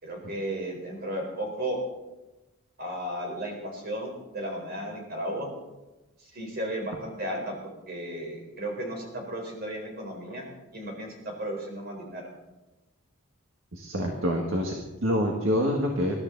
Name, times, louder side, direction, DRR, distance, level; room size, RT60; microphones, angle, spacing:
voice 1, 0.0-1.8 2.8-5.5 6.3-7.6 7.9-12.2, right 1 dB, 45° right, 1 dB, 4.3 m, -34 dB
voice 2, 13.7-16.2, equal, 60° right, 1 dB, 1.7 m, -27 dB
21.5 x 13.0 x 4.0 m, 1.0 s
head